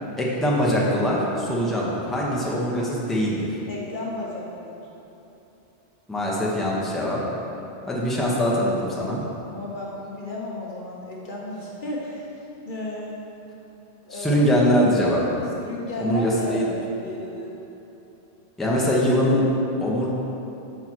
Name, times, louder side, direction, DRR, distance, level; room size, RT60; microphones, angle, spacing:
voice 1, 0.1-3.5 6.1-7.2 7.9-9.2 14.1-15.2 16.0-16.6 18.6-19.5 19.8-20.1, equal, ahead, -5 dB, 0.8 m, -22 dB
voice 2, 3.7-4.9 9.5-12.3 12.7-13.2 14.0-14.4 15.6-17.6, left 2 dB, 50° left, -4 dB, 0.8 m, -34 dB
5.6 x 4.5 x 6.1 m, 2.9 s
omnidirectional pair, 1.1 m